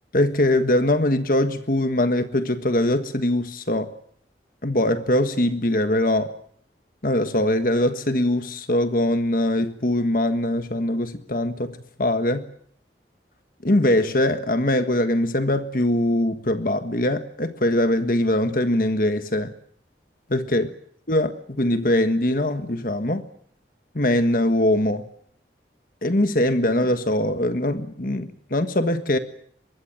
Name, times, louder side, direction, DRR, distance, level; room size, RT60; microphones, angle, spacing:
voice 1, 0.1-3.9 4.6-6.3 7.0-12.5 13.6-19.5 20.3-20.7 21.1-23.2 23.9-25.1 26.0-29.2, left 1 dB, 50° left, 1.5 m, -22 dB
24.0 x 21.5 x 8.9 m
head